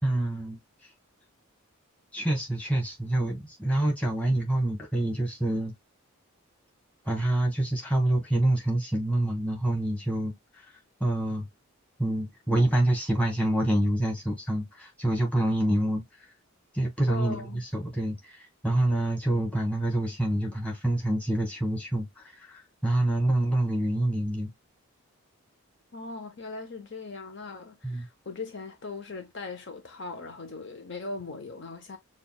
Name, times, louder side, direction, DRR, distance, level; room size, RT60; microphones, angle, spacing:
voice 1, 0.0-0.9 2.1-5.7 7.0-10.7 11.0-11.5 12.0-16.0 16.7-24.5 27.8-28.1, right 1 dB, 5° left, 1.5 m, -27 dB
voice 2, 17.1-17.6 25.9-32.0, left 3 dB, 50° left, 0.7 m, -39 dB
6.5 x 2.4 x 2.3 m
head